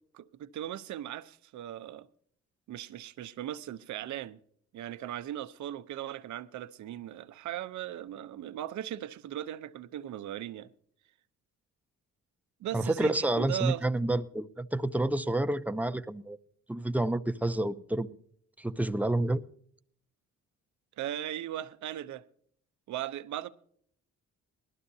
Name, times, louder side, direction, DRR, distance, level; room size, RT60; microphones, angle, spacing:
voice 1, 0.1-2.1 2.7-4.4 4.7-10.7 12.6-14.1 21.0-22.3 22.9-23.5, right 12 dB, 70° right, 0.7 m, -38 dB
voice 2, 12.7-16.4 16.7-18.2 18.6-19.4, right 1 dB, 5° right, 0.6 m, -29 dB
20.0 x 13.0 x 2.7 m
cardioid pair, 90°, 30 cm